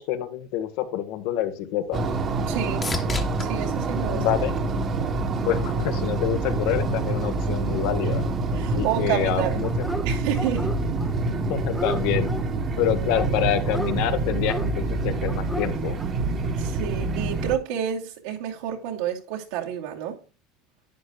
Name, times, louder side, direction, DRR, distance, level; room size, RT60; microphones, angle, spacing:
voice 1, 0.0-2.0 4.1-4.5 5.4-8.2 8.7-9.7 11.3-12.3 12.8-16.0, left 12 dB, 65° left, 1.5 m, -27 dB
sound 1, 1.1-5.3 5.8-6.4 14.2-14.3, left 3 dB, 15° left, 1.3 m, -37 dB
sound 2, 1.9-17.6, right 3 dB, 30° right, 1.4 m, -26 dB
voice 2, 2.5-3.0 3.4-4.3 8.5-9.6 10.0-10.7 16.6-20.2, right 10 dB, 80° right, 2.6 m, -29 dB
Dog, 9.6-10.1 10.3-11.1 11.4-12.4 13.1-14.0 14.4-14.7 15.3-15.7 16.0-16.1, equal, ahead, 0.8 m, -33 dB
11.0 x 9.7 x 2.4 m
supercardioid pair, 150°, 0 cm